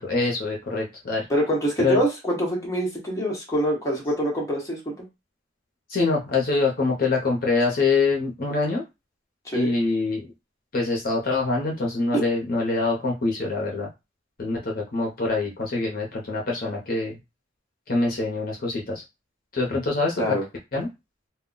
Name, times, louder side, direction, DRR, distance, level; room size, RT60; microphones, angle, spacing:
voice 1, 0.0-1.2 1.8-2.0 5.9-8.8 9.5-10.3 10.7-13.9 14.4-17.2 17.9-19.0 19.5-20.4 20.7-20.9, left 3 dB, 50° left, -1 dB, 0.7 m, -25 dB
voice 2, 1.3-5.1 9.4-9.7 20.2-20.4, equal, 15° left, -2 dB, 0.9 m, -25 dB
2.2 x 2.1 x 3.8 m, 0.24 s
head